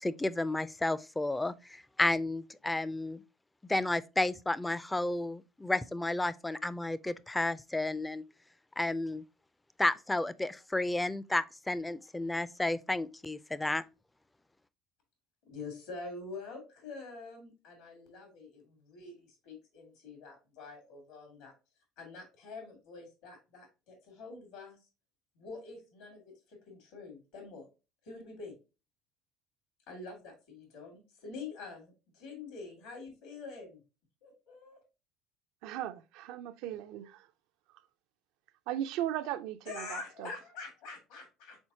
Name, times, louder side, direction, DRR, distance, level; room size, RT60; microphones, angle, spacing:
voice 1, 0.0-3.2 3.7-8.2 8.8-9.2 9.8-13.8, left 2 dB, 10° left, 0.3 m, -32 dB
voice 2, 15.5-21.5 22.0-24.8 25.3-27.7 28.0-28.5 29.9-33.8 34.2-34.8 39.7-41.6, left 4 dB, 75° left, 2.4 m, -46 dB
voice 3, 35.6-37.3 38.7-40.3, right 12 dB, 75° right, 0.4 m, -37 dB
4.4 x 4.1 x 2.7 m
supercardioid pair, 95°, 0 cm